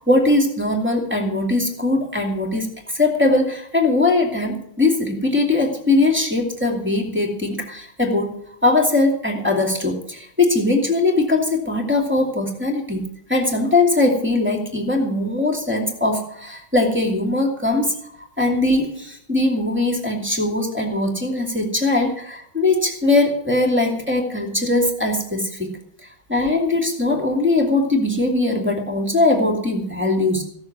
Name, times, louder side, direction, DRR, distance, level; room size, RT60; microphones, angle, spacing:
voice 1, 0.0-8.3 8.6-18.1 18.4-25.7 26.3-30.4, left 2 dB, 5° right, -1 dB, 2.4 m, -20 dB
16.0 x 6.8 x 7.9 m, 0.70 s
omnidirectional pair, 2.2 m